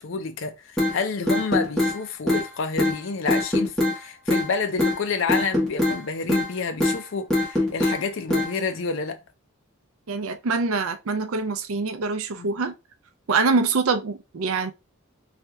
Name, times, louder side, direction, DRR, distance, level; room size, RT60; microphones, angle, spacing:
voice 1, 0.0-9.2 12.3-12.6, left 4 dB, 60° left, 0.5 m, -29 dB
sound 1, 0.8-0.9 1.3-1.9 2.3-2.4 2.8-2.9 3.3-3.9 4.3-4.5 4.8-4.9 5.3-6.0 6.3-6.5 6.8-7.0 7.3-8.0 8.3-8.5, left 1 dB, ahead, 1.3 m, -22 dB
voice 2, 10.1-12.7 13.3-14.7, right 4 dB, 75° right, 0.5 m, -24 dB
3.2 x 2.8 x 3.3 m
head